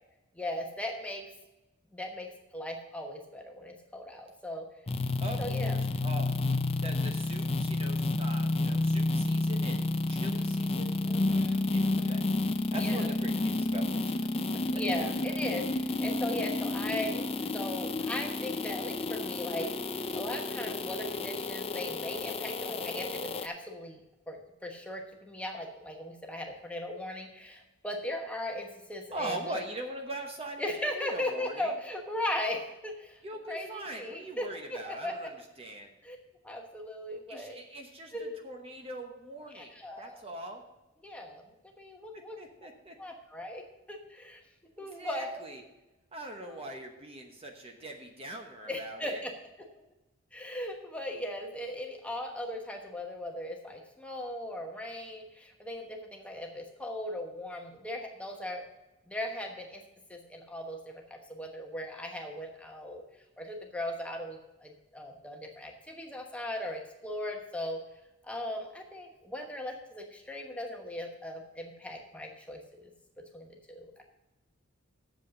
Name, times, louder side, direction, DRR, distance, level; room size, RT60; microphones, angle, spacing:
voice 1, 0.3-1.3 1.9-4.7 5.4-5.8 11.0-12.2 12.7-13.1 14.7-17.2 17.5-19.7 20.0-24.0 24.3-29.6 30.6-33.2 33.5-35.1 36.0-36.2 36.4-37.6 38.1-38.4 39.5-40.2 41.0-41.4 41.8-42.4 43.0-43.6 43.9-44.4 44.8-45.5 46.5-46.6 48.7-49.3 49.7-49.8 50.3-58.6 59.1-59.8 60.1-63.0 63.4-67.8 68.2-72.9 73.3-74.0, left 1 dB, 5° left, 1 dB, 1.1 m, -38 dB
sound 1, 4.9-23.5, left 2 dB, 25° left, 0.5 m, -30 dB
voice 2, 5.2-6.3 6.8-11.3 11.7-12.2 12.7-14.2 29.1-31.7 33.2-35.9 37.3-40.6 42.1-42.9 44.8-45.6 46.1-49.2, right 1 dB, 25° right, 3 dB, 0.9 m, -42 dB
8.4 x 7.2 x 6.3 m, 0.99 s
head